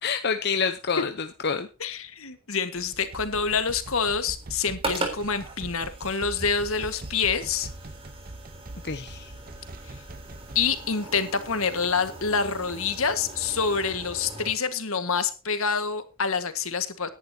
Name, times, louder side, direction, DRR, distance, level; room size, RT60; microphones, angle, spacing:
voice 1, 0.0-1.7 8.8-9.3, left 5 dB, 50° left, 8 dB, 0.8 m, -27 dB
voice 2, 1.8-7.7 10.5-17.1, left 5 dB, 75° left, 10 dB, 1.7 m, -27 dB
sound 1, 2.7-10.9, right 2 dB, 40° right, 0.8 m, -43 dB
sound 2, 2.8-14.5, right 2 dB, 25° right, 3.7 m, -40 dB
18.0 x 11.0 x 2.8 m, 0.32 s
head